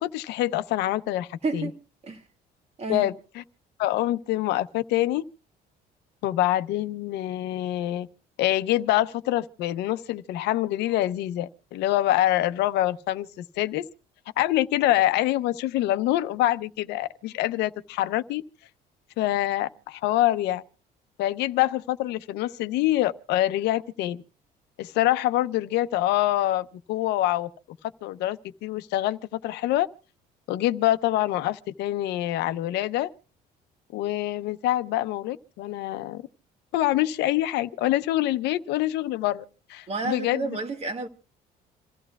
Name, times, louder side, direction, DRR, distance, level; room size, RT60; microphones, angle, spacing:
voice 1, 0.0-1.7 2.9-3.1 3.8-5.2 6.2-8.1 8.4-13.9 14.4-18.4 19.2-20.6 21.2-24.2 24.8-27.5 28.0-29.9 30.5-33.1 33.9-36.2 36.7-39.4 39.7-40.6, left 14 dB, 85° left, 0.8 m, -25 dB
voice 2, 1.4-1.8 2.0-2.2 2.8-3.1 39.9-41.1, right 3 dB, 40° right, 2.0 m, -30 dB
27.5 x 14.0 x 2.3 m
cardioid pair, 110°, 17 cm